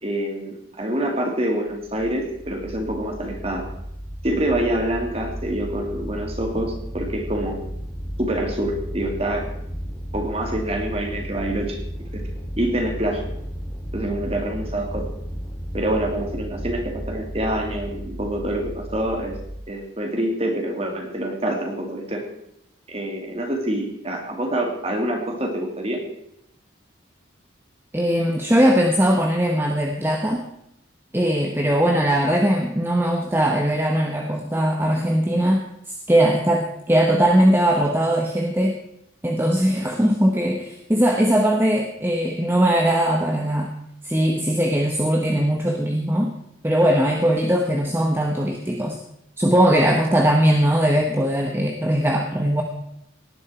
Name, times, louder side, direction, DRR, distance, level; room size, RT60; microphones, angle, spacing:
voice 1, 0.0-3.7 4.2-7.6 8.2-9.5 10.1-11.8 12.1-12.2 12.6-13.2 13.9-15.1 15.7-19.4 19.7-22.2 22.9-26.0, right 1 dB, 30° right, 2 dB, 2.7 m, -26 dB
sound 1, 1.7-19.6, equal, 10° left, 2.4 m, -33 dB
voice 2, 27.9-30.5 31.1-38.8 39.2-43.7 44.0-46.3 46.6-49.0 49.4-52.6, equal, 10° right, 2 dB, 1.1 m, -20 dB
18.0 x 10.5 x 4.4 m, 0.79 s
head